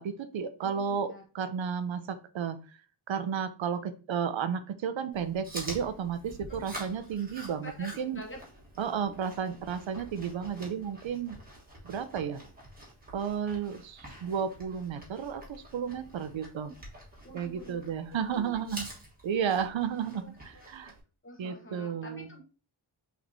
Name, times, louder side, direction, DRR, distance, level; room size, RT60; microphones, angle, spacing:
voice 1, 0.0-2.6 3.1-8.2 8.8-11.3 11.8-12.4 13.1-16.7 17.3-18.9 19.2-20.9 21.4-22.3, right 7 dB, 75° right, 11 dB, 0.6 m, -33 dB
voice 2, 0.6-1.2 6.5-6.6 7.6-8.4 9.1-9.2 16.6-16.7 17.2-17.8 18.1-18.5 20.2-20.3 20.5-20.7 21.2-22.4, equal, 25° left, 1 dB, 1.0 m, -46 dB
Chewing mastication, 5.1-21.0, right 1 dB, 20° right, 1.3 m, -47 dB
5.9 x 3.2 x 2.6 m, 0.36 s
wide cardioid pair, 150°, 47 cm